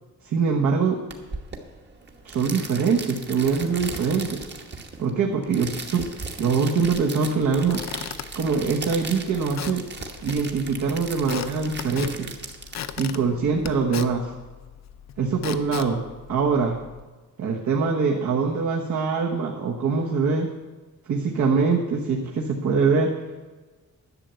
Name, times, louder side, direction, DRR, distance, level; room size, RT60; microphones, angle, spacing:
voice 1, 0.2-1.0 2.2-4.4 5.0-6.1 6.4-7.9 8.3-9.9 10.2-12.3 13.0-14.3 15.2-16.0 16.3-16.8 17.4-20.5 21.1-23.1, right 5 dB, 65° right, 0 dB, 1.3 m, -23 dB
sound 1, 1.1-13.7, right 4 dB, 35° right, 1.2 m, -38 dB
Squeak / Wood, 7.4-17.0, left 9 dB, 60° left, 0.6 m, -38 dB
11.0 x 6.8 x 8.9 m, 1.3 s
wide cardioid pair, 155°, 31 cm